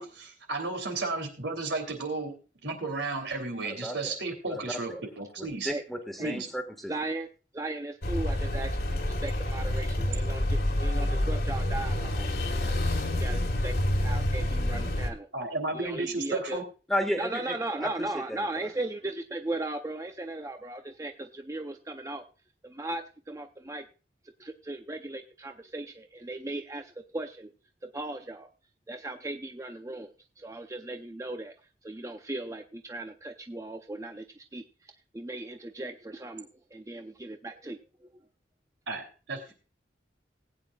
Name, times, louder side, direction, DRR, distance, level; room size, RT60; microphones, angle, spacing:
voice 1, 0.0-5.7 6.2-6.5 15.3-16.6 38.9-39.5, right 3 dB, 80° right, 5 dB, 2.9 m, -33 dB
voice 2, 3.6-4.2 4.5-4.6 4.9-5.0 5.4-6.9 16.9-17.9 18.1-18.7, equal, ahead, 5 dB, 1.5 m, -34 dB
voice 3, 6.9-7.3 7.5-12.3 12.6-15.3 15.7-16.6 17.2-22.2 22.6-23.9 24.4-27.5 27.8-28.5 28.9-31.5 31.8-38.1, right 2 dB, 15° right, 6 dB, 0.5 m, -37 dB
sound 1, 8.0-15.1, left 1 dB, 55° left, 1.5 m, -28 dB
19.5 x 8.9 x 2.3 m, 0.34 s
head